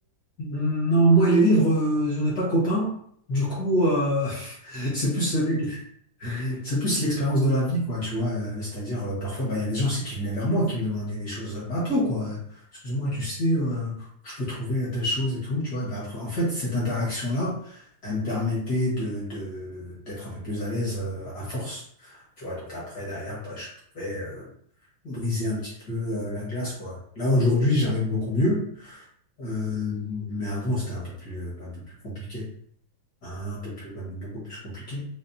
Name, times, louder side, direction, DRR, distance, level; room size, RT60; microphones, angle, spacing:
voice 1, 0.4-2.9 3.3-5.6 6.2-12.4 12.8-23.7 23.9-24.5 25.0-29.0 29.4-32.4 33.2-35.1, equal, 60° left, -8 dB, 1.1 m, -26 dB
5.1 x 2.5 x 2.7 m, 0.64 s
omnidirectional pair, 3.7 m